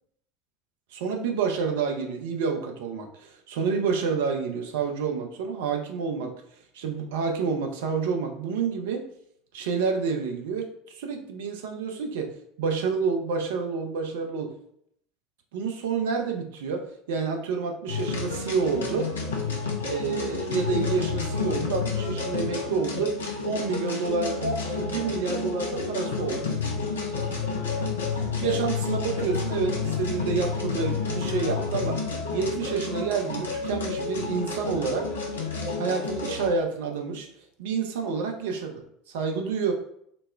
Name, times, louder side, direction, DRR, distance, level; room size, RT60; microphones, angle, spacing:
voice 1, 0.9-6.3 6.7-9.1 9.5-10.7 10.9-12.3 12.6-14.5 15.5-19.1 19.9-23.1 23.4-26.5 28.4-32.0 32.3-35.1 35.8-37.3 37.6-39.7, right 5 dB, 65° right, 3 dB, 0.6 m, -28 dB
sound 1, 17.9-36.5, left 4 dB, 75° left, 0.6 m, -30 dB
4.0 x 2.1 x 3.3 m, 0.71 s
figure-of-eight pair, 70°, 0 cm